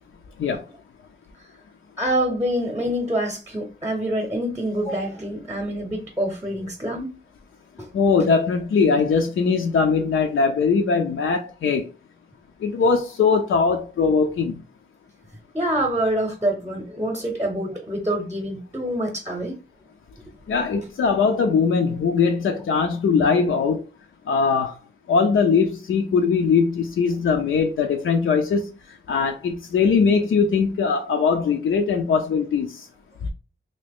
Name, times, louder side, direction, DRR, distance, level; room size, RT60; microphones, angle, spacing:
voice 1, 2.0-7.2 15.5-19.5, right 1 dB, 15° right, 0.7 m, -26 dB
voice 2, 7.9-11.9 12.6-14.6 20.5-23.8 24.3-24.7 25.1-28.6 29.1-32.8, left 5 dB, 85° left, 0.5 m, -20 dB
2.9 x 2.7 x 3.4 m
wide cardioid pair, 110°, 20 cm